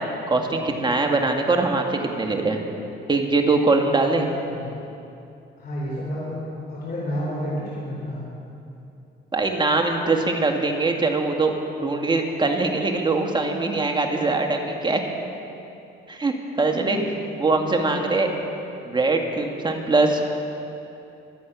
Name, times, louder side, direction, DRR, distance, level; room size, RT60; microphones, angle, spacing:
voice 1, 0.3-2.6 3.1-4.3 9.3-15.1 16.1-17.0 17.4-18.3 18.8-20.2, right 3 dB, 25° right, 3 dB, 2.0 m, -22 dB
voice 2, 4.0-4.7 5.6-6.4 6.7-8.2 16.6-17.0 17.4-18.3, equal, 50° left, -6 dB, 4.3 m, -31 dB
24.0 x 8.6 x 6.2 m, 2.8 s
cardioid pair, 90°, 20 cm